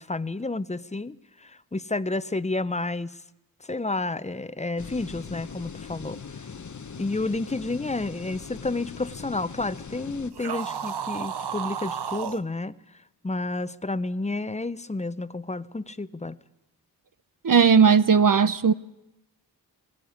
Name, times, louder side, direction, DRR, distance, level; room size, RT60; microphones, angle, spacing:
voice 1, 0.0-3.2 3.7-6.2 7.0-12.7 13.2-16.4, left 2 dB, 20° left, 0.7 m, -30 dB
sound 1, 4.8-10.3, left 5 dB, 50° left, 0.9 m, -40 dB
sound 2, 10.3-12.4, right 8 dB, 90° right, 0.9 m, -32 dB
voice 2, 17.4-18.7, right 6 dB, 55° right, 0.7 m, -17 dB
18.0 x 18.0 x 9.5 m
wide cardioid pair, 60°, 38 cm